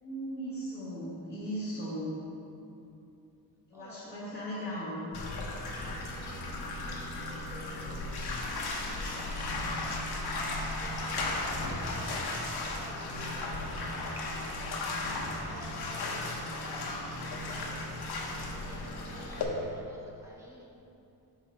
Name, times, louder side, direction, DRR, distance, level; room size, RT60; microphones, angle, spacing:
voice 1, 0.0-2.1 3.7-5.0, equal, 25° left, -11 dB, 1.4 m, -37 dB
voice 2, 3.7-4.8 5.9-8.0 8.6-10.5 10.8-14.7 15.5-16.3 16.6-20.6, equal, 5° right, -5 dB, 0.9 m, -53 dB
Bathtub (filling or washing), 5.1-19.4, left 2 dB, 85° left, 0.9 m, -35 dB
5.6 x 5.5 x 4.2 m, 2.7 s
wide cardioid pair, 175°, 38 cm